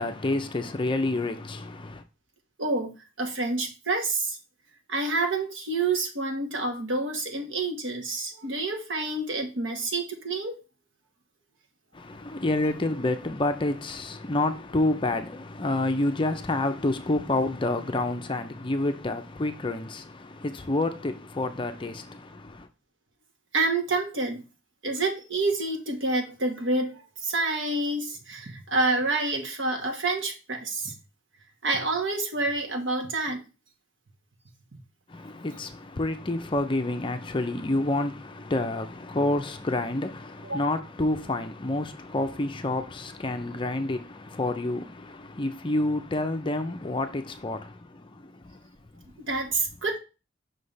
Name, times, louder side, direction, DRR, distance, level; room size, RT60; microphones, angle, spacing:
voice 1, 0.0-2.0 11.9-22.7 35.1-48.5 49.0-49.1, left 2 dB, 25° left, 0.5 m, -29 dB
voice 2, 2.6-4.4 4.9-10.6 23.5-24.5 24.8-30.9 31.6-33.4 40.4-40.7 49.2-50.0, right 2 dB, 65° right, 1.5 m, -28 dB
5.8 x 3.3 x 5.5 m
head